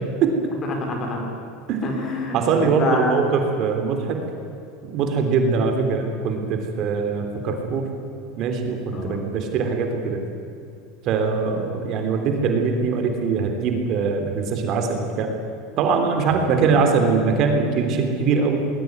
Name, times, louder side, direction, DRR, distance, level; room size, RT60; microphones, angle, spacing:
voice 1, 0.6-1.3 1.8-3.1 8.9-9.2 16.3-16.5, left 2 dB, 30° left, 3 dB, 4.8 m, -27 dB
voice 2, 2.3-4.2 4.8-7.9 8.4-10.2 11.0-15.3 15.8-18.6, right 5 dB, 45° right, 4 dB, 3.5 m, -22 dB
20.0 x 18.5 x 9.7 m, 2.7 s
supercardioid pair, 140°, 0 cm